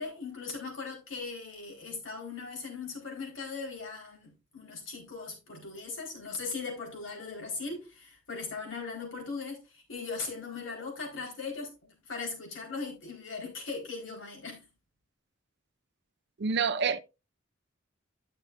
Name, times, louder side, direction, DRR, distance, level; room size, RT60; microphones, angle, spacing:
voice 1, 0.0-14.7, left 4 dB, 70° left, 4.4 m, -39 dB
voice 2, 16.4-17.0, right 5 dB, 55° right, 0.6 m, -27 dB
13.0 x 6.5 x 2.6 m
head